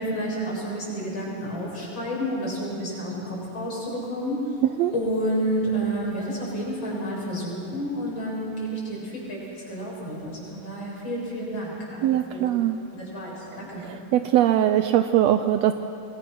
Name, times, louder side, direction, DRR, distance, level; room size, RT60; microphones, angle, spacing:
voice 1, 0.0-4.4 4.9-12.5 12.9-13.8, right 1 dB, 35° left, -5 dB, 7.3 m, -30 dB
voice 2, 12.0-12.8 13.8-15.7, right 12 dB, 90° right, 9 dB, 1.4 m, -21 dB
26.5 x 21.5 x 6.2 m, 2.7 s
omnidirectional pair, 3.7 m